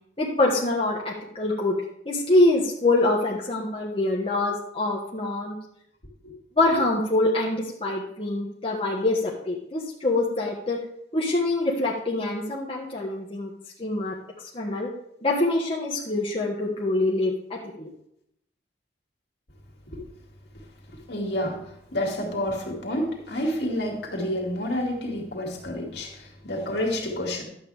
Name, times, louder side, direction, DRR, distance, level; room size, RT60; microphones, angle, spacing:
voice 1, 0.2-1.8 2.0-5.5 6.6-10.8 11.1-13.5 13.8-14.2 14.5-14.9 15.2-17.9, left 2 dB, 30° left, -4 dB, 1.4 m, -25 dB
voice 2, 21.1-21.6 21.9-27.4, left 1 dB, 65° left, -1 dB, 2.4 m, -29 dB
11.5 x 8.1 x 3.4 m, 0.76 s
head